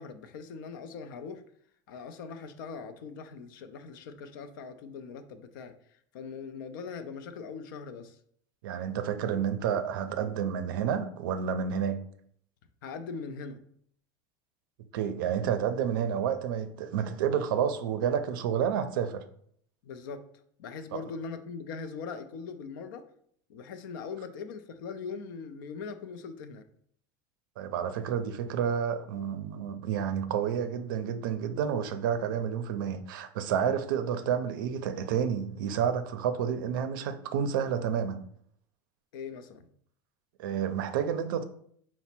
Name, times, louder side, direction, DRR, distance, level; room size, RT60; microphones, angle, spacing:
voice 1, 0.0-1.4 1.9-5.7 6.1-8.2 12.8-13.6 19.8-20.2 20.6-23.0 23.5-26.6 39.1-39.7, left 5 dB, 90° left, 0.4 m, -41 dB
voice 2, 8.6-12.0 14.9-19.3 20.9-21.0 27.6-38.2 40.4-41.4, right 8 dB, 90° right, 0.4 m, -30 dB
4.1 x 2.0 x 4.2 m
supercardioid pair, 140°, 11 cm